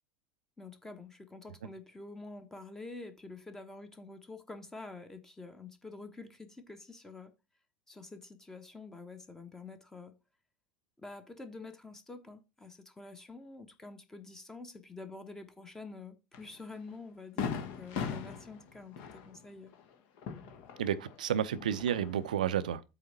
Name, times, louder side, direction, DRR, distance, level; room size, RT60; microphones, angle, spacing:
voice 1, 0.6-7.3 7.9-10.1 11.0-19.7, left 3 dB, 10° left, 1.1 m, -47 dB
Fireworks, 16.3-16.5 16.9-17.0 17.4-21.2 21.5-22.3, left 6 dB, 50° left, 1.4 m, -39 dB
voice 2, 20.8-22.8, right 9 dB, 65° right, 0.6 m, -31 dB
8.2 x 3.5 x 6.7 m
figure-of-eight pair, 80°, 5 cm